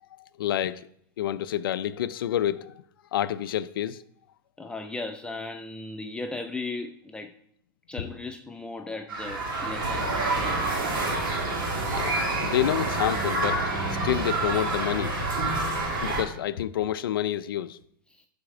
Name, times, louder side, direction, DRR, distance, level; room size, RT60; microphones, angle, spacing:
voice 1, 0.2-0.9 1.2-2.8 3.1-4.0 8.8-8.9 11.1-11.5 11.8-13.6 14.0-15.1 15.9-17.8, left 11 dB, 85° left, 0.4 m, -28 dB
voice 2, 4.6-7.3 7.9-10.7 18.1-18.3, left 3 dB, 10° left, 0.4 m, -37 dB
sound 1, 9.1-16.2, right 2 dB, 75° right, 2.8 m, -28 dB
11.0 x 4.3 x 4.8 m
hypercardioid pair, 130°, 11 cm